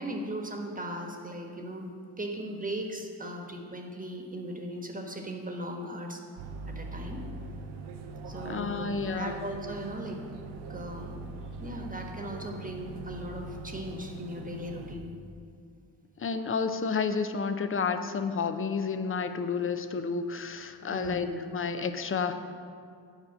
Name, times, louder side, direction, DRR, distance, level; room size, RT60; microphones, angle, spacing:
voice 1, 0.0-1.9 2.2-7.2 8.3-10.2 10.7-11.2 11.6-15.1 20.9-21.3, equal, 15° right, 2 dB, 1.3 m, -38 dB
sound 1, 6.4-15.0, right 3 dB, 90° right, 0.8 m, -42 dB
voice 2, 8.4-9.4 16.2-22.3, left 5 dB, 30° left, 8 dB, 0.6 m, -30 dB
8.9 x 4.9 x 6.1 m, 2.3 s
cardioid pair, 65°, 46 cm